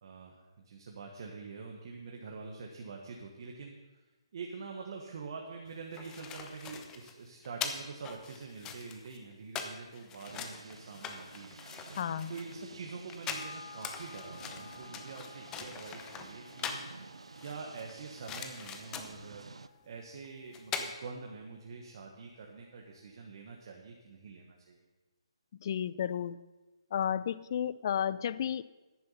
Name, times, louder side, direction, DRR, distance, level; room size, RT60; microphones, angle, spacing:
voice 1, 0.0-4.0 4.3-11.5 12.3-16.8 17.4-24.9, right 4 dB, 50° right, 1 dB, 1.5 m, -45 dB
sound 1, 5.7-16.9 17.4-19.3 20.2-20.3 20.5-20.9, left 7 dB, 15° left, 0.9 m, -42 dB
sound 2, 10.3-19.7, right 3 dB, 80° right, 0.6 m, -51 dB
voice 2, 12.0-12.3 25.6-26.4 26.9-28.6, left 9 dB, 45° left, 18 dB, 0.4 m, -32 dB
sound 3, 13.3-22.1 22.5-22.6, left 5 dB, 70° left, 1.3 m, -55 dB
10.5 x 9.4 x 5.6 m, 1.2 s
hypercardioid pair, 150°, 3 cm